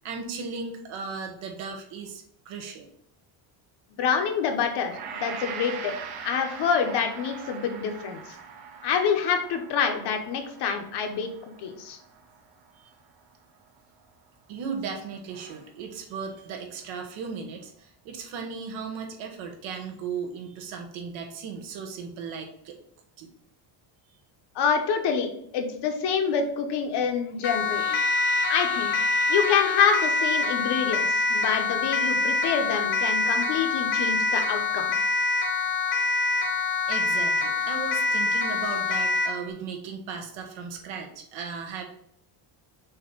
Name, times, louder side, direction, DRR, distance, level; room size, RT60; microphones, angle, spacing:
voice 1, 0.0-2.9 12.8-12.9 14.5-22.8 23.2-23.3 36.9-41.8, right 5 dB, 70° right, 3 dB, 1.3 m, -36 dB
voice 2, 3.9-5.9 6.2-8.4 8.8-12.0 24.5-28.0 28.5-28.9 29.3-35.0, left 6 dB, 55° left, 5 dB, 1.0 m, -27 dB
Gong, 4.9-13.3 13.7-13.8, right 6 dB, 50° right, 0.9 m, -42 dB
Siren, 27.4-39.4, left 3 dB, 30° left, 0.3 m, -25 dB
sound 1, 27.7-31.5, right 3 dB, 20° right, 0.8 m, -43 dB
6.4 x 2.9 x 5.2 m, 0.70 s
cardioid pair, 160°, 48 cm